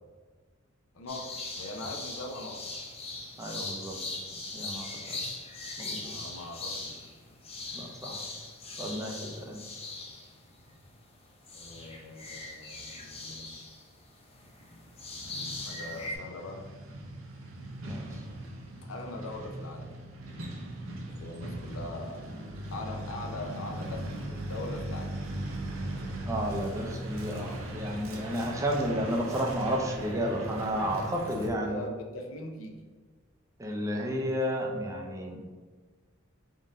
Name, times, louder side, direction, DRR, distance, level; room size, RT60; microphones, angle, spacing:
voice 1, 0.9-2.6 6.0-7.0 11.5-13.7 15.3-16.6 18.9-19.9 21.1-22.3 22.7-25.1 31.4-32.8, left 2 dB, 75° left, 3 dB, 0.6 m, -41 dB
sound 1, 1.1-11.2 11.4-16.1, left 2 dB, 30° left, 0.6 m, -40 dB
voice 2, 3.4-4.0 4.5-5.2 5.8-6.2 7.7-8.2 8.8-9.6 17.8-18.2 26.2-31.8 33.6-35.4, equal, 15° right, 1 dB, 0.5 m, -32 dB
Truck, 15.3-31.5, right 1 dB, 85° right, 0.6 m, -39 dB
3.8 x 2.6 x 3.6 m, 1.4 s
head